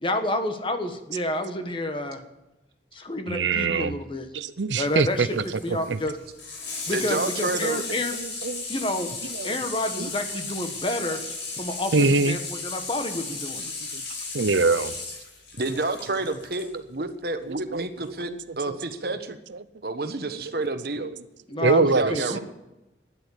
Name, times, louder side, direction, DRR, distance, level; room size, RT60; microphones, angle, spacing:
voice 1, 0.0-2.2 2.9-4.3 4.7-5.4 5.6-6.1 6.9-8.1 8.7-9.1 9.4-11.2 11.6-13.6 21.5-22.4, left 1 dB, 30° left, 7 dB, 1.3 m, -29 dB
voice 2, 3.3-4.0 4.3-6.0 8.1-8.6 9.2-9.6 10.0-10.1 11.9-12.4 13.6-14.0 14.3-15.0 16.6-16.7 17.0-17.1 17.5-18.4 18.7-18.8 19.0-19.2 19.5-19.6 20.3-20.4 21.0-21.1 21.5-22.4, right 3 dB, 85° right, 14 dB, 0.7 m, -25 dB
Water tap faucet / Sink (filling or washing), 4.8-16.7 18.0-18.1, left 3 dB, 75° left, 5.5 m, -35 dB
voice 3, 6.9-7.8 15.6-18.3 18.6-19.4 19.8-21.1 21.8-22.4, right 2 dB, 55° right, 9 dB, 1.2 m, -29 dB
13.0 x 10.0 x 8.4 m, 0.97 s
head